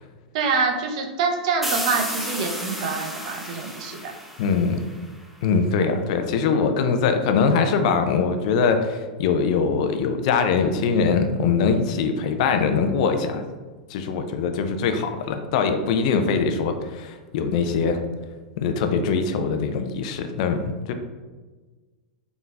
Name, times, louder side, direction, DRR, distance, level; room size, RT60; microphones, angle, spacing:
voice 1, 0.3-4.1, right 4 dB, 55° right, 3 dB, 0.6 m, -25 dB
sound 1, 1.6-5.2, equal, 5° right, 0.7 m, -32 dB
voice 2, 4.4-4.8 5.4-13.4 13.9-18.0 18.6-20.9, left 5 dB, 55° left, 7 dB, 0.4 m, -22 dB
3.9 x 3.7 x 2.4 m, 1.3 s
hypercardioid pair, 95°, 4 cm